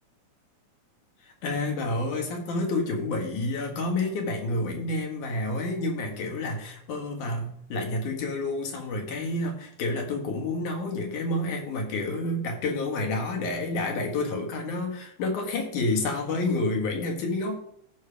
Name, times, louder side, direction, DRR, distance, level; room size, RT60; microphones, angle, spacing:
voice 1, 1.2-17.5, left 2 dB, 90° left, 2 dB, 3.2 m, -29 dB
14.0 x 5.2 x 3.4 m, 0.70 s
omnidirectional pair, 3.4 m